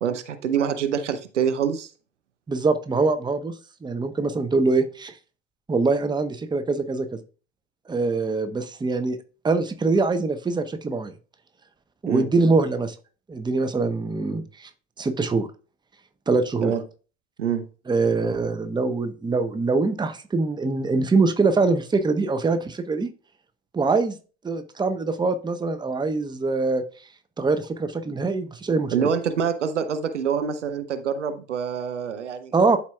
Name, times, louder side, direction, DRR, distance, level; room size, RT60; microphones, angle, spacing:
voice 1, 0.0-1.9 12.0-12.3 16.6-16.8 17.4-17.6 28.9-32.5, right 7 dB, 85° right, 10 dB, 0.7 m, -25 dB
voice 2, 2.5-3.5 3.8-5.2 5.7-7.2 7.9-9.2 9.4-11.1 12.0-13.0 13.3-14.7 15.0-15.5 16.3-16.7 17.9-23.1 23.7-24.2 24.4-26.8 27.4-29.1 32.5-32.8, right 3 dB, 10° right, 8 dB, 0.8 m, -23 dB
11.5 x 4.3 x 2.3 m, 0.36 s
figure-of-eight pair, 65°, 35 cm